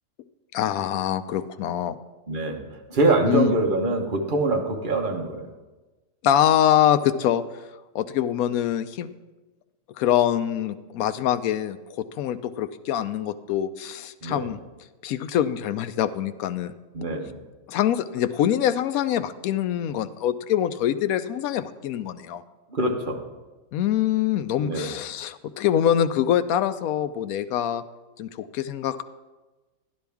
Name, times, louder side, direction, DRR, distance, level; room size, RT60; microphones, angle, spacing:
voice 1, 0.5-2.0 3.3-3.5 6.2-7.4 7.9-9.1 10.0-14.6 15.0-16.7 17.7-22.4 23.7-27.8 28.2-29.0, left 10 dB, 80° left, 12 dB, 1.0 m, -24 dB
voice 2, 2.3-2.6 2.9-5.5 14.2-14.5 16.9-17.4 22.7-23.2 24.6-24.9, right 2 dB, 40° right, 2 dB, 1.2 m, -24 dB
11.5 x 11.5 x 3.5 m, 1.2 s
omnidirectional pair, 1.5 m